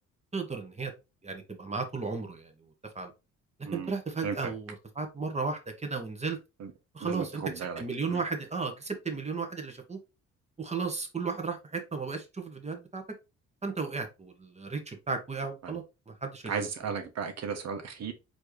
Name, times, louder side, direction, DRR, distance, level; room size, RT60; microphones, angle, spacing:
voice 1, 0.3-0.9 1.2-2.5 2.9-3.1 3.7-6.4 6.9-10.0 10.6-13.0 13.6-16.5, right 4 dB, 20° right, 1.3 m, -34 dB
voice 2, 7.0-7.8 8.1-8.2 15.6-15.7 16.5-18.1, right 6 dB, 60° right, 1.2 m, -35 dB
4.4 x 3.0 x 3.2 m
cardioid pair, 90°, 30 cm